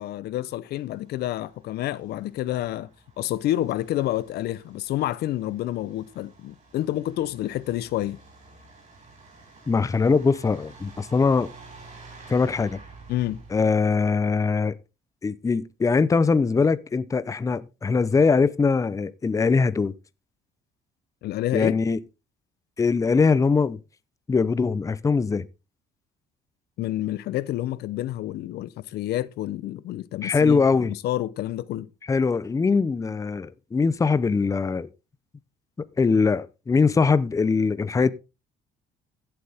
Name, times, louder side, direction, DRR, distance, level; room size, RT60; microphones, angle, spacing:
voice 1, 0.0-2.9 3.2-8.2 13.1-13.4 21.2-21.7 26.8-30.6 30.9-31.9, left 14 dB, 70° left, 0.7 m, -29 dB
Truck, 0.7-13.6, right 3 dB, 45° right, 6.6 m, -50 dB
voice 2, 9.7-11.5 12.3-12.8 13.5-14.8 15.2-19.9 21.5-22.0 22.8-23.8 24.3-25.5 30.2-30.9 32.1-34.9 36.0-38.1, left 4 dB, 20° left, 0.6 m, -22 dB
15.5 x 7.9 x 3.5 m
cardioid pair, 110°, 17 cm